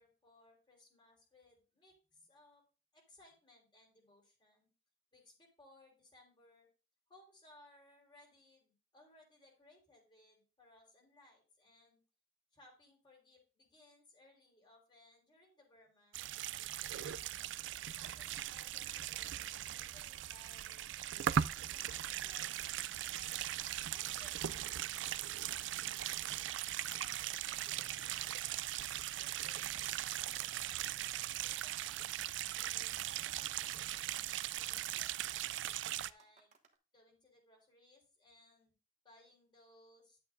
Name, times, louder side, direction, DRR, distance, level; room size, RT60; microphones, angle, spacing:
voice 1, 0.0-2.6 2.9-4.7 5.1-6.7 7.1-12.0 12.5-16.2 17.0-20.8 21.7-22.7 23.1-26.5 26.9-28.8 29.2-32.1 32.5-35.5 36.0-36.5 36.9-38.7 39.0-40.2, left 2 dB, 25° left, 1 dB, 4.1 m, -65 dB
sound 1, 16.1-36.1, right 11 dB, 70° right, 0.4 m, -39 dB
sound 2, 23.9-36.8, right 5 dB, 35° right, 1.1 m, -62 dB
11.0 x 8.3 x 2.6 m, 0.33 s
head